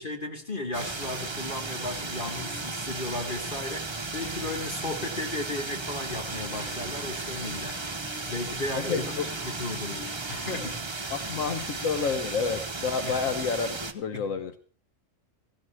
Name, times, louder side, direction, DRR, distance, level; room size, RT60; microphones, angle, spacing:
voice 1, 0.0-7.8 8.3-9.1 9.4-11.1 13.0-13.1 14.1-14.2, left 2 dB, 40° left, 3 dB, 3.0 m, -35 dB
sound 1, 0.7-13.9, right 3 dB, 25° right, 1.0 m, -35 dB
sound 2, 1.6-3.2 3.5-11.0, left 3 dB, 60° left, 2.5 m, -49 dB
voice 2, 8.8-9.3 11.1-14.5, left 5 dB, 85° left, 10 dB, 1.4 m, -29 dB
16.0 x 16.0 x 4.6 m, 0.41 s
omnidirectional pair, 1.4 m